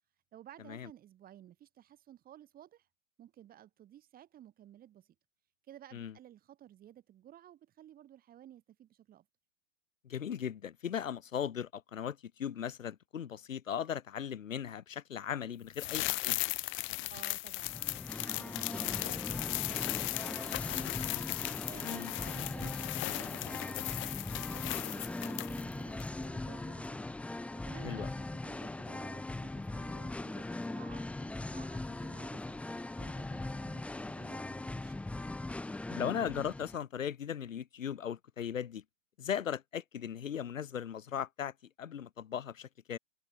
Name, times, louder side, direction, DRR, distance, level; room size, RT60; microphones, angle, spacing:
voice 1, 0.3-2.9 3.2-5.1 5.7-9.3 17.1-17.8 18.2-20.9 21.6-23.9 24.5-27.2 27.5-35.0, right 11 dB, 25° right, 3.9 m, -55 dB
voice 2, 10.0-16.4 21.8-22.1 27.8-28.1 35.9-38.8 39.2-43.0, left 8 dB, 80° left, 1.6 m, -38 dB
sound 1, 15.7-25.7 26.0-26.1, left 21 dB, 30° left, 2.0 m, -37 dB
Singing, 17.6-36.8, left 2 dB, 5° left, 1.1 m, -40 dB
hypercardioid pair, 125°, 38 cm